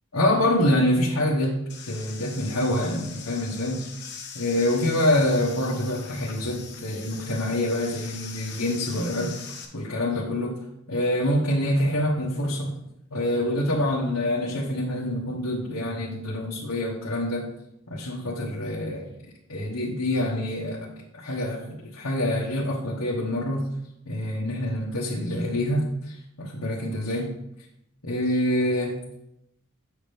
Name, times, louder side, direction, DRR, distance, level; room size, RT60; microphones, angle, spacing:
voice 1, 0.1-1.6 1.9-3.9 4.3-9.4 9.7-10.6 10.9-12.7 13.1-17.4 17.9-19.1 19.5-20.8 21.2-23.6 24.1-27.3 28.0-28.9, left 1 dB, 90° left, -5 dB, 1.3 m, -26 dB
sound 1, 1.7-9.6, left 6 dB, 50° left, 1.2 m, -42 dB
8.1 x 6.0 x 3.4 m, 0.83 s
head